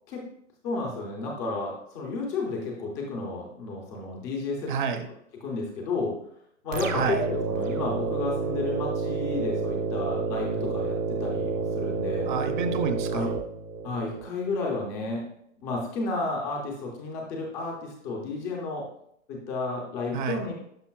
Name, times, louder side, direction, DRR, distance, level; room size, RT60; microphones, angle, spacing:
voice 1, 0.6-4.7 5.4-6.2 6.6-12.3 13.1-13.3 13.8-15.2 15.6-18.8 19.3-20.5, left 3 dB, 10° left, -1 dB, 0.4 m, -32 dB
voice 2, 4.7-5.1 6.9-7.2 12.3-13.3 20.1-20.4, right 6 dB, 40° right, 7 dB, 0.7 m, -29 dB
sound 1, 6.7-14.2, right 4 dB, 85° right, 1.1 m, -29 dB
10.5 x 5.4 x 2.3 m, 0.72 s
hypercardioid pair, 145°, 38 cm